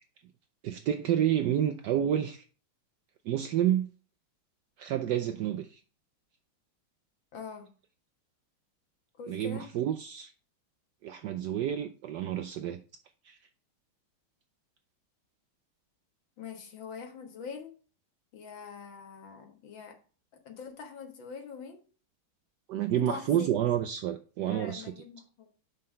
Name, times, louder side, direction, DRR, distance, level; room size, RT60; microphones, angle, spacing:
voice 1, 0.6-2.4 3.2-3.9 4.8-5.8 9.3-10.3 11.0-12.8 13.2-13.4 22.7-24.9, right 10 dB, 75° right, 1.0 m, -29 dB
voice 2, 7.3-7.7 9.2-9.7 16.4-17.7 18.3-20.0 20.5-21.8 23.1-23.5 24.5-25.5, left 6 dB, 65° left, 2.1 m, -43 dB
5.7 x 5.5 x 5.2 m
omnidirectional pair, 2.3 m